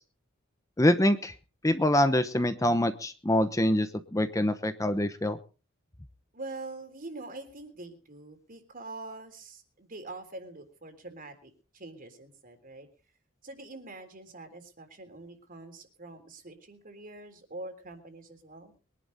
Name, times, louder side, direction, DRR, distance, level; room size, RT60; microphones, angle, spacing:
voice 1, 0.8-1.3 1.6-5.4, left 1 dB, 15° left, 10 dB, 0.9 m, -25 dB
voice 2, 6.3-12.9 13.4-18.7, right 2 dB, 45° right, 7 dB, 3.5 m, -44 dB
23.0 x 11.0 x 4.1 m, 0.36 s
head